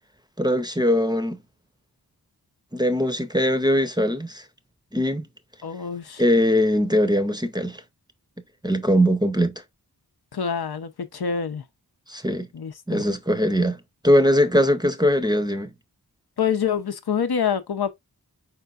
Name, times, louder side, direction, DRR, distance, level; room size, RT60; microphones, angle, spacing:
voice 1, 0.4-1.4 2.7-4.4 4.9-5.3 6.2-7.8 8.6-9.5 12.1-12.5 12.9-15.7, equal, 10° right, 0.6 m, -21 dB
voice 2, 5.6-6.2 10.3-11.6 12.5-13.0 13.6-13.7 16.4-17.9, left 7 dB, 75° left, 0.7 m, -26 dB
4.6 x 4.4 x 2.4 m
wide cardioid pair, 55°, 38 cm